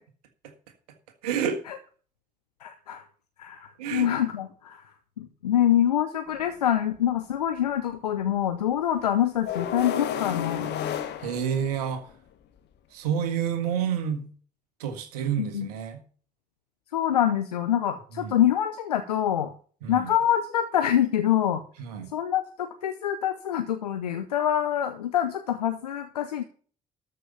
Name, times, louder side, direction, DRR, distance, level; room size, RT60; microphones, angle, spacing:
voice 1, 1.2-1.6 3.8-4.1 11.2-12.0 12.9-14.3 14.8-16.0 18.2-18.4 19.8-20.1 21.8-22.1, right 8 dB, 80° right, 7 dB, 1.7 m, -29 dB
voice 2, 2.6-3.0 3.4-4.9 5.2-10.7 15.4-15.7 16.9-19.5 19.9-21.6 22.1-26.4, left 10 dB, 85° left, 8 dB, 0.7 m, -25 dB
sound 1, 6.3-6.4 9.5-12.1, left 9 dB, 60° left, 1.4 m, -31 dB
13.5 x 5.5 x 6.9 m, 0.42 s
figure-of-eight pair, 45°, 20 cm